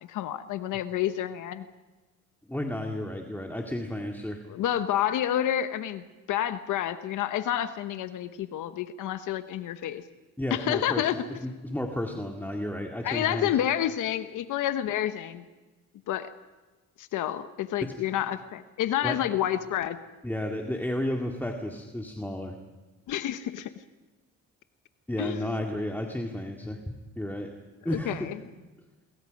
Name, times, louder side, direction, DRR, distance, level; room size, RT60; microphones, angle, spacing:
voice 1, 0.1-1.7 4.5-10.0 10.5-11.2 13.0-15.4 16.1-16.3 17.0-20.0 23.1-23.7 25.2-25.6 27.9-28.4, left 11 dB, 85° left, 10 dB, 1.0 m, -29 dB
voice 2, 2.5-4.4 10.4-13.5 17.8-18.0 19.0-19.2 20.2-22.5 25.1-26.8 27.2-27.5 27.8-28.3, left 1 dB, 5° left, 1 dB, 2.1 m, -32 dB
26.0 x 22.5 x 5.3 m, 1.2 s
cardioid pair, 90°, 30 cm